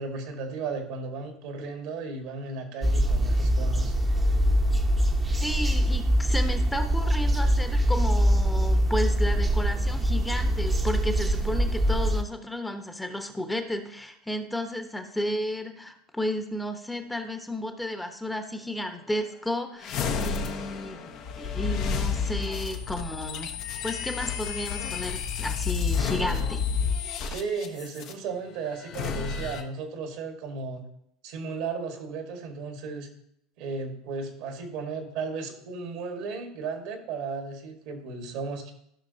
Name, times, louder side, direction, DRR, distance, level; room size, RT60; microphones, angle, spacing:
voice 1, 0.0-3.9 27.3-30.9 31.2-33.1 33.6-38.7, right 4 dB, 65° right, 4 dB, 1.8 m, -35 dB
sound 1, 2.8-12.2, equal, 20° right, 1.0 m, -23 dB
voice 2, 5.4-23.6 23.8-26.6, left 1 dB, 5° left, 6 dB, 1.1 m, -33 dB
sound 2, 19.8-28.1 28.8-29.6, left 6 dB, 55° left, 1.1 m, -30 dB
15.0 x 5.8 x 2.8 m, 0.75 s
hypercardioid pair, 80°, 0 cm